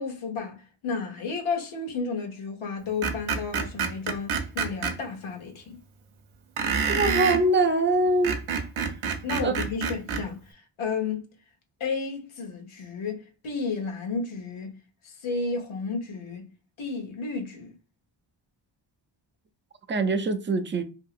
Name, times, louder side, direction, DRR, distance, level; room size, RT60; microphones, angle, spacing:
voice 1, 0.0-5.8 9.2-11.2 11.8-14.7 15.0-16.5 16.8-17.7, left 4 dB, 90° left, 1.0 m, -32 dB
Screech, 3.0-4.9 6.6-7.4 8.1-10.2, right 5 dB, 85° right, 0.7 m, -27 dB
voice 2, 6.9-8.3 9.4-9.5 19.9-20.8, right 2 dB, 25° right, 0.4 m, -23 dB
2.8 x 2.7 x 2.4 m
wide cardioid pair, 90°, 47 cm